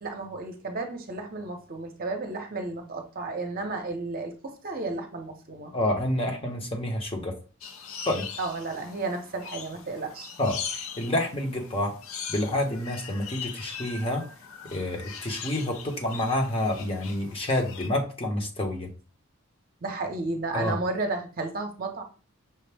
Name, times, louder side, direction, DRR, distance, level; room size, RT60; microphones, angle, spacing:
voice 1, 0.0-5.7 8.4-10.3 19.8-22.0, right 3 dB, 40° right, 0.7 m, -33 dB
voice 2, 5.7-7.4 8.1-8.3 10.4-11.9 12.3-14.3 14.7-18.9 20.5-20.8, left 1 dB, 25° left, 0.7 m, -28 dB
sound 1, 7.6-17.9, left 7 dB, 70° left, 0.5 m, -41 dB
5.7 x 2.1 x 3.3 m
head